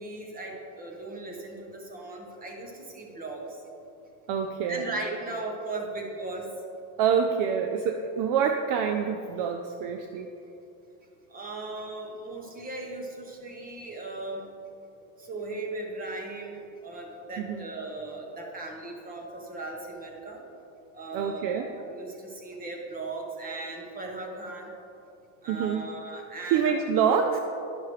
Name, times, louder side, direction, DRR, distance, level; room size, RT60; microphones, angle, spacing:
voice 1, 0.0-3.6 4.7-6.5 11.3-14.5 15.2-20.4 20.9-24.7 25.4-26.7, right 2 dB, 20° right, 0 dB, 1.2 m, -37 dB
voice 2, 4.3-4.9 7.0-10.3 17.4-17.7 21.1-21.7 25.5-25.9 26.5-27.4, right 7 dB, 55° right, 5 dB, 0.5 m, -26 dB
11.5 x 5.7 x 3.2 m, 2.8 s
cardioid pair, 140°, 40 cm